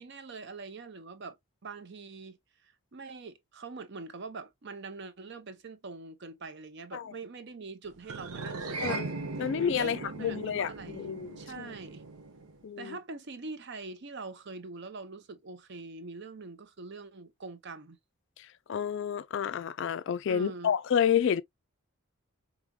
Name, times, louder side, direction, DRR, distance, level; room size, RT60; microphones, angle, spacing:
voice 1, 0.0-1.4 1.6-2.4 2.6-9.0 9.8-11.0 11.4-12.0 12.8-18.0 20.3-20.7, right 3 dB, 50° right, 0.7 m, -43 dB
sound 1, 8.1-12.6, right 3 dB, 90° right, 0.8 m, -39 dB
voice 2, 8.8-9.1 9.4-11.7 12.6-13.0 18.4-21.4, left 8 dB, 55° left, 0.3 m, -30 dB
4.9 x 2.9 x 2.3 m
head